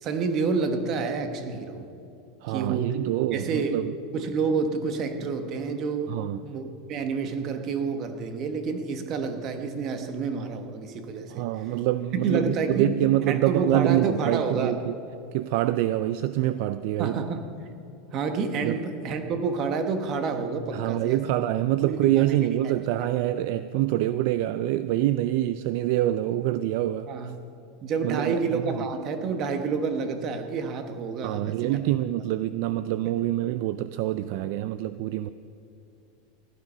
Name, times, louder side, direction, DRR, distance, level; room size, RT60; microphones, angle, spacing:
voice 1, 0.0-1.9 2.5-3.0 3.3-3.8 4.1-11.5 12.2-12.9 13.3-14.8 17.0-17.4 18.1-21.2 21.8-22.4 22.6-22.7 23.0-23.1 27.1-27.4 27.8-31.8 33.0-33.2, right 4 dB, 35° right, 7 dB, 1.3 m, -29 dB
voice 2, 2.4-3.9 6.1-6.4 11.3-14.9 15.3-17.2 18.6-18.8 20.7-27.1 28.0-28.8 31.2-35.3, right 14 dB, 55° right, 13 dB, 0.4 m, -26 dB
16.0 x 11.5 x 5.6 m, 2.7 s
supercardioid pair, 155°, 0 cm